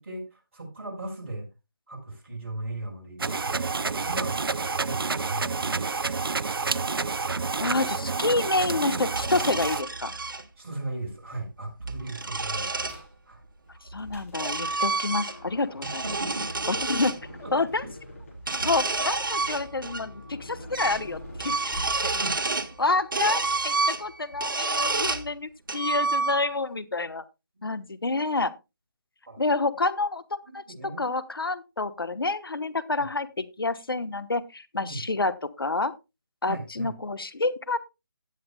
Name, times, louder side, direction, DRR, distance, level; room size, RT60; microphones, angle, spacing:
voice 1, 0.0-1.5 1.9-4.4 4.8-6.0 10.6-13.4 16.0-16.6 17.4-17.5 22.1-22.5 29.3-29.4 30.5-31.0 33.0-33.1 34.8-35.0 36.5-36.9, right 2 dB, 35° right, -2 dB, 4.5 m, -37 dB
sound 1, 3.2-9.8, right 4 dB, 85° right, 0.5 m, -29 dB
voice 2, 7.6-10.1 13.9-16.0 16.7-17.2 17.5-17.8 18.5-21.7 22.0-22.1 22.8-27.2 27.6-28.5 29.4-30.6 31.0-35.9 36.4-37.8, left 3 dB, 85° left, 14 dB, 1.0 m, -28 dB
sound 2, 9.1-10.4 11.6-13.0 13.9-15.5 15.8-17.2 18.4-20.0 20.3-20.4 20.7-21.1 21.3-22.7 23.1-25.3 25.7-26.6, right 3 dB, 65° right, 1.5 m, -29 dB
sound 3, 12.8-13.2 13.7-22.0, left 1 dB, 40° left, 4.9 m, -44 dB
17.0 x 7.7 x 2.2 m, 0.25 s
figure-of-eight pair, 165°, 12 cm